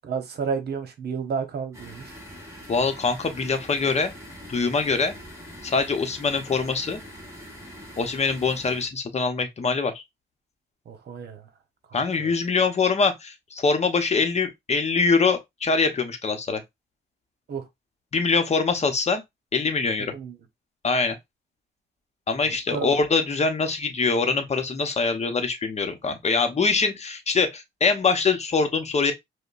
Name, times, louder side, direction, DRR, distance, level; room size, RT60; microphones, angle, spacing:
voice 1, 0.0-2.2 10.9-11.5 12.2-12.3 17.5-17.7 20.1-20.4 22.4-22.9, right 5 dB, 55° right, 1.0 m, -31 dB
sound 1, 1.7-8.9, equal, 15° right, 1.8 m, -43 dB
voice 2, 2.7-4.1 4.5-5.1 5.6-7.0 8.0-10.0 11.9-16.6 18.1-19.2 19.5-20.1 20.8-21.2 22.3-29.1, left 4 dB, 35° left, 0.9 m, -23 dB
5.0 x 2.2 x 2.5 m
cardioid pair, 90°, 20 cm